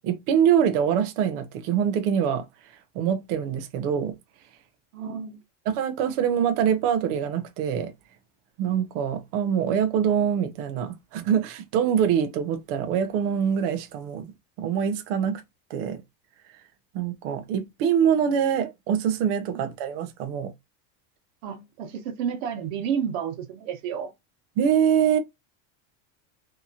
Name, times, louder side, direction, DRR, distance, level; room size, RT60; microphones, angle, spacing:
voice 1, 0.0-2.4 2.9-4.1 5.7-7.9 8.6-14.2 14.6-15.4 15.7-16.0 16.9-20.5 24.6-25.2, right 8 dB, 40° right, 0.6 m, -24 dB
voice 2, 4.9-5.4 21.4-24.1, right 8 dB, 60° right, 1.2 m, -31 dB
3.5 x 2.9 x 2.8 m
supercardioid pair, 175°, 44 cm